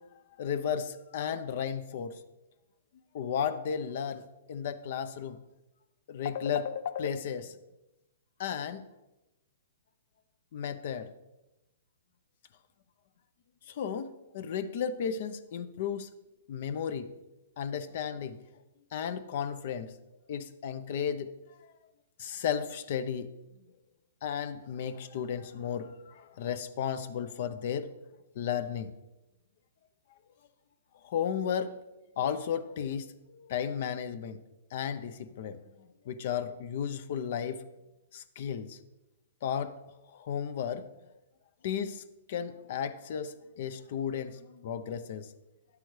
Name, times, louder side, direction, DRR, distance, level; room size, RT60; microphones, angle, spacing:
voice 1, 0.4-2.2 3.1-4.2 4.5-5.4 6.1-7.5 8.4-8.8 10.5-11.1 13.7-16.1 16.5-17.1 17.6-18.4 18.9-19.9 20.3-21.3 22.2-23.3 24.2-27.9 28.4-28.9 31.0-31.8 32.2-34.4 34.7-37.6 38.1-38.8 39.4-39.8 40.1-40.9 41.6-42.0 42.3-45.3, left 8 dB, 55° left, 12 dB, 0.6 m, -34 dB
9.4 x 8.3 x 3.2 m, 0.98 s
hypercardioid pair, 135°, 0 cm